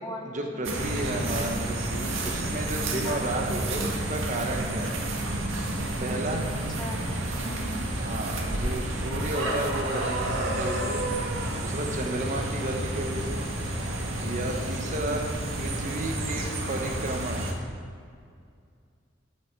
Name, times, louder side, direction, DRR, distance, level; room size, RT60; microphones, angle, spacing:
voice 1, 0.2-4.9 6.0-6.4 7.3-7.4 8.0-11.0 11.6-13.4 14.2-15.2 15.6-17.4, right 1 dB, 40° right, 2 dB, 1.1 m, -33 dB
sound 1, 0.6-17.5, right 1 dB, 85° right, 1.8 m, -30 dB
voice 2, 3.0-3.4 6.5-7.8 14.3-14.7, left 1 dB, 20° left, 0 dB, 1.3 m, -41 dB
12.0 x 8.7 x 4.6 m, 2.2 s
head